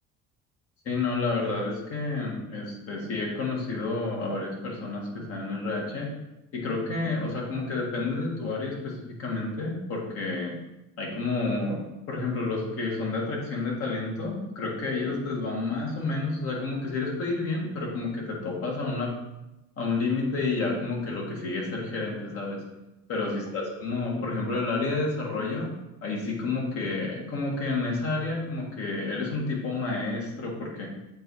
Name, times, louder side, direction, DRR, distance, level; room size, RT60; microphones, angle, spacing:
voice 1, 0.8-6.1 6.5-10.5 11.0-11.8 12.1-19.1 19.8-22.6 23.1-25.7 26.0-30.9, left 3 dB, 50° left, -2 dB, 2.0 m, -30 dB
7.7 x 2.8 x 4.7 m, 0.94 s
supercardioid pair, 105°, 29 cm